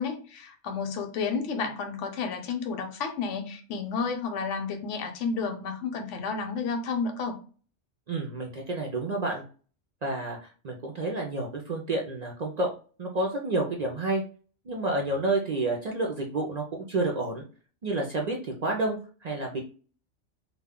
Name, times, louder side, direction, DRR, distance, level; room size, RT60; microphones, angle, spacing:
voice 1, 0.0-7.4, left 5 dB, 80° left, 5 dB, 0.9 m, -31 dB
voice 2, 8.1-9.4 10.0-10.4 10.6-12.7 13.0-14.2 14.7-17.4 17.8-19.6, right 2 dB, 60° right, 0 dB, 0.4 m, -29 dB
2.2 x 2.2 x 3.5 m, 0.38 s
omnidirectional pair, 1.3 m